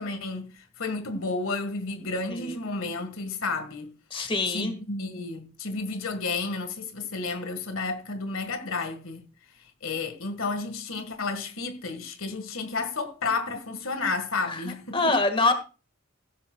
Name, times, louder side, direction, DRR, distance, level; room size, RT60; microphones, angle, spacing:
voice 1, 0.0-3.9 4.5-9.2 9.8-15.2, left 3 dB, 85° left, 1.7 m, -31 dB
voice 2, 4.1-4.7 14.5-15.5, left 3 dB, 25° left, 1.7 m, -25 dB
15.5 x 12.5 x 2.3 m
head